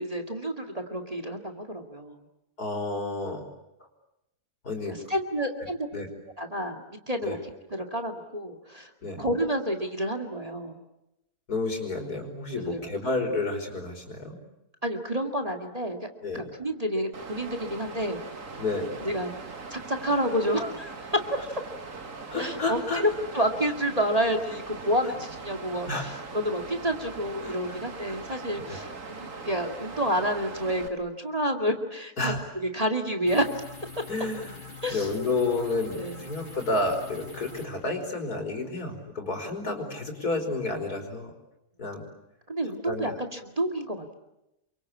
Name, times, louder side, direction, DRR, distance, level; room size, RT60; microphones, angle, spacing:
voice 1, 0.0-2.2 4.9-5.8 6.4-7.4 7.7-8.9 9.2-10.8 12.5-12.9 14.8-16.1 16.3-18.2 19.0-19.3 19.7-20.9 21.3-21.4 22.4-22.8 23.3-32.3 32.7-33.5 34.8-35.1 35.9-36.2 42.5-44.1, equal, 25° right, 5 dB, 2.3 m, -29 dB
voice 2, 2.6-3.5 4.6-5.0 5.6-6.1 7.2-7.4 9.0-9.2 11.5-14.4 16.2-16.4 18.6-18.9 22.3-23.0 25.9-26.1 27.4-27.8 28.0-28.2 28.6-28.9 32.2-32.4 34.1-34.6 34.9-41.3 41.8-42.1 42.9-43.1, left 2 dB, 75° left, 4 dB, 5.6 m, -30 dB
Water, 17.1-30.9, right 4 dB, 55° right, 2.4 m, -41 dB
sound 1, 33.3-37.7, left 4 dB, 30° left, 5.2 m, -44 dB
28.5 x 24.0 x 8.6 m, 0.89 s
omnidirectional pair, 1.6 m